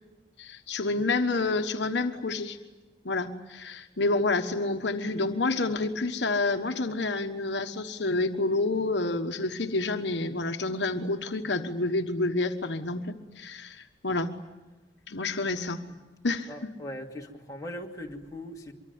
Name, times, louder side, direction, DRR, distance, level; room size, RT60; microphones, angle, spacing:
voice 1, 0.4-2.6 3.0-14.3 15.1-15.8 16.2-16.5, left 3 dB, 70° left, 6 dB, 1.3 m, -29 dB
voice 2, 16.5-18.7, left 1 dB, 20° left, -1 dB, 2.6 m, -40 dB
24.5 x 24.0 x 9.5 m, 1.1 s
head